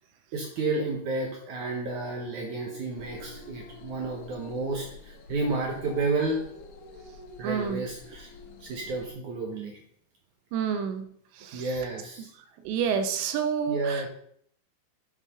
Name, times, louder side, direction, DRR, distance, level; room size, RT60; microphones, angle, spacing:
voice 1, 0.3-6.4 7.4-8.3 8.6-9.8 11.5-12.3 13.7-14.1, right 3 dB, 65° right, 0 dB, 2.0 m, -31 dB
sound 1, 3.0-9.1, left 3 dB, 75° left, 3.2 m, -47 dB
voice 2, 7.4-7.8 10.5-11.1 11.3-11.7 12.6-14.1, right 7 dB, 85° right, 9 dB, 3.0 m, -29 dB
8.1 x 6.6 x 5.4 m, 0.66 s
omnidirectional pair, 5.0 m